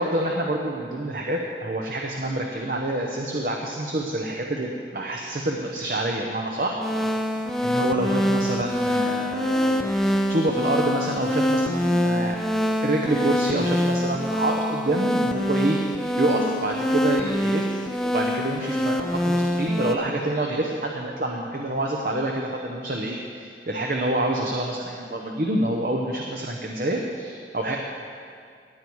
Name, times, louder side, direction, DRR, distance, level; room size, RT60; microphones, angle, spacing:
voice 1, 0.0-6.8 7.6-12.4 12.8-27.8, right 1 dB, 50° right, 1 dB, 0.9 m, -27 dB
sound 1, 6.8-19.9, left 1 dB, ahead, 0.5 m, -25 dB
16.5 x 9.4 x 4.7 m, 2.2 s
head